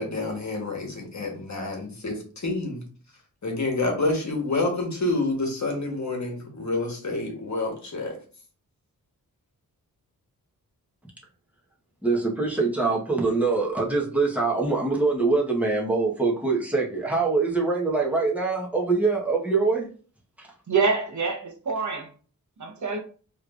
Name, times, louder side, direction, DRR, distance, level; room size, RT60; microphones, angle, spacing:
voice 1, 0.0-2.8 3.4-8.2, left 2 dB, 50° left, 1.3 m, -28 dB
voice 2, 12.0-19.9 20.4-20.5, right 3 dB, 5° right, 1.3 m, -24 dB
voice 3, 20.7-22.1 22.6-23.0, right 4 dB, 50° right, 1.0 m, -26 dB
4.4 x 3.2 x 2.5 m
wide cardioid pair, 85°, 36 cm